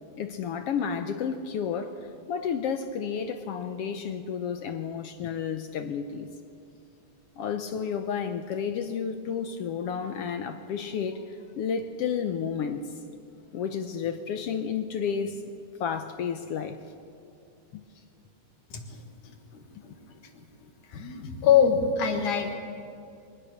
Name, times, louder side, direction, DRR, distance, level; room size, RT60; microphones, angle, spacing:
voice 1, 0.2-6.3 7.4-12.8 13.5-15.4 15.8-16.8 17.7-17.8, left 7 dB, 70° left, 8 dB, 1.5 m, -31 dB
voice 2, 19.5-20.4 20.9-22.6, left 7 dB, 90° left, 5 dB, 3.2 m, -25 dB
23.0 x 19.0 x 6.6 m, 2.5 s
omnidirectional pair, 3.4 m